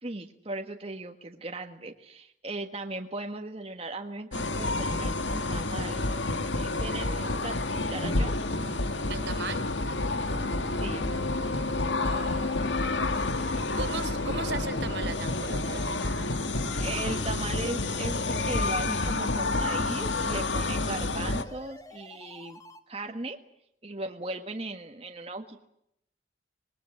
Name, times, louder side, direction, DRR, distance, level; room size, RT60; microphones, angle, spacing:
voice 1, 0.0-6.1 6.5-8.3 10.8-11.0 16.8-22.6 22.9-23.4 23.8-25.7, right 2 dB, 35° right, 3 dB, 1.5 m, -37 dB
sound 1, 4.3-21.4, left 2 dB, 85° left, 1.8 m, -29 dB
voice 2, 9.1-9.6 12.0-12.8 13.8-15.9, right 4 dB, 80° right, 10 dB, 3.6 m, -37 dB
sound 2, 10.1-22.8, left 1 dB, 20° left, 1.7 m, -47 dB
26.0 x 21.0 x 7.7 m, 0.76 s
head